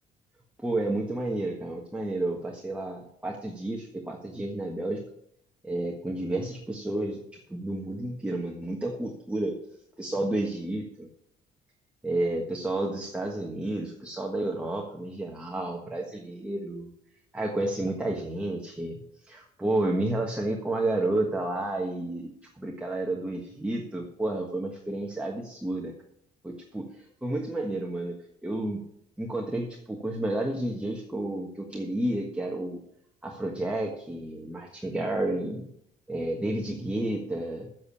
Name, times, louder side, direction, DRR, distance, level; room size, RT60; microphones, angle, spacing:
voice 1, 0.6-5.0 5.6-9.6 10.0-11.1 12.0-16.9 17.3-25.9 26.4-28.2 28.4-28.8 29.2-32.8 33.2-35.7 36.1-37.7, right 1 dB, 5° right, 0 dB, 1.4 m, -31 dB
7.9 x 7.4 x 8.4 m, 0.73 s
cardioid pair, 110°, 17 cm